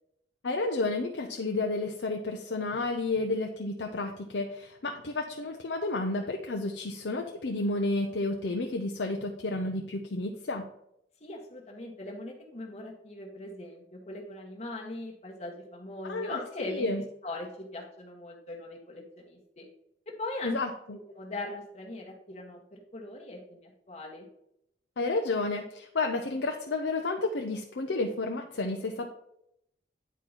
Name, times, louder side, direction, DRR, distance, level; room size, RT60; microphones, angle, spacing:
voice 1, 0.4-10.7 16.0-17.0 20.4-21.0 25.0-29.1, left 2 dB, 80° left, 3 dB, 0.7 m, -31 dB
voice 2, 11.2-16.9 17.2-19.7 20.1-20.6 21.1-24.3, left 2 dB, 40° left, -1 dB, 1.2 m, -40 dB
9.1 x 4.6 x 4.0 m, 0.77 s
head